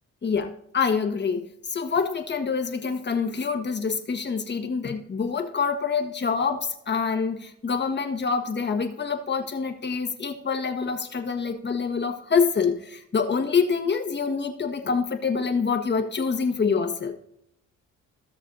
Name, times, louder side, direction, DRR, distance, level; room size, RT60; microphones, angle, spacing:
voice 1, 0.2-17.1, left 5 dB, 35° left, 5 dB, 1.4 m, -26 dB
16.5 x 6.3 x 2.6 m, 0.73 s
cardioid pair, 90°, 30 cm